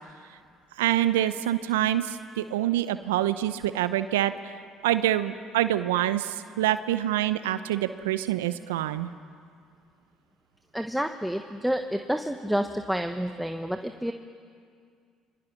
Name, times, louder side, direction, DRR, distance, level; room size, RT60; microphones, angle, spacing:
voice 1, 0.8-4.3 4.8-9.1, right 13 dB, 85° right, 13 dB, 0.7 m, -26 dB
voice 2, 10.7-14.1, equal, ahead, 6 dB, 1.2 m, -29 dB
26.5 x 25.0 x 6.1 m, 2.2 s
hypercardioid pair, 60°, 0 cm